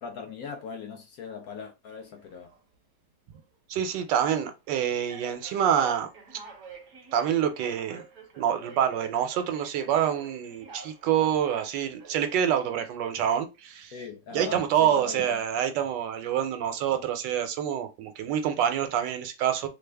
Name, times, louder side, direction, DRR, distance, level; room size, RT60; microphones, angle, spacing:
voice 1, 0.0-2.5 13.9-15.4, left 5 dB, 65° left, 0.9 m, -39 dB
sound 1, 2.0-2.6 3.3-3.5 4.4-4.5 5.1-12.4, right 4 dB, 60° right, 0.9 m, -48 dB
voice 2, 3.7-6.1 7.1-8.0 8.4-13.9 14.3-19.7, right 9 dB, 80° right, 1.2 m, -26 dB
3.3 x 2.0 x 3.3 m
omnidirectional pair, 2.0 m